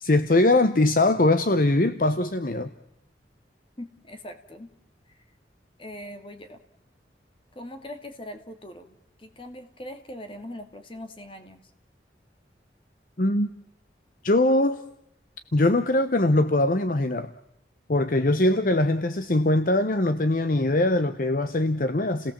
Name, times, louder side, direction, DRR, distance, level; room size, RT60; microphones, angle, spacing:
voice 1, 0.0-2.7 13.2-13.5 14.2-14.8 15.5-17.3 17.9-22.3, left 2 dB, 50° left, 10 dB, 0.9 m, -22 dB
voice 2, 3.8-4.7 5.1-5.2 5.8-6.6 7.5-11.6, left 1 dB, 30° left, 7 dB, 2.1 m, -41 dB
29.5 x 17.5 x 7.4 m, 0.79 s
head